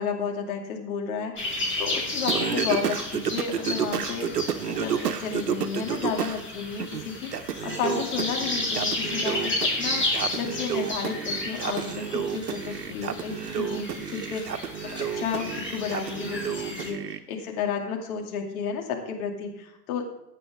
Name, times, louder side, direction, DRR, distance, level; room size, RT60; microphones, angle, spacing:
voice 1, 0.0-4.3 4.7-20.0, left 6 dB, 60° left, 3 dB, 2.7 m, -32 dB
sound 1, 1.4-16.9, left 2 dB, 25° left, 4.7 m, -33 dB
Singing, 2.3-6.4 6.8-17.2, right 8 dB, 80° right, 0.9 m, -31 dB
sound 2, 8.1-9.0 9.9-15.1, right 3 dB, 10° right, 4.4 m, -49 dB
15.5 x 9.0 x 3.6 m, 0.91 s
figure-of-eight pair, 85°, 47 cm